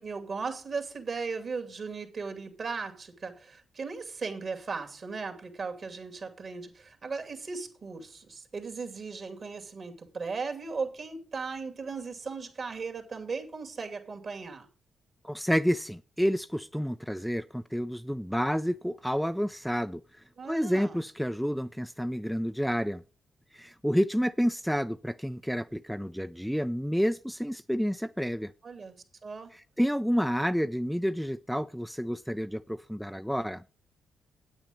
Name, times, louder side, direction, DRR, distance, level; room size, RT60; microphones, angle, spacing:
voice 1, 0.0-14.7 20.4-21.0 28.6-29.0 29.2-29.6, right 4 dB, 55° right, 2.5 m, -37 dB
voice 2, 15.2-20.0 20.5-23.0 23.5-28.5 29.8-33.6, equal, ahead, 0.5 m, -29 dB
9.0 x 8.8 x 5.2 m
supercardioid pair, 50°, 0 cm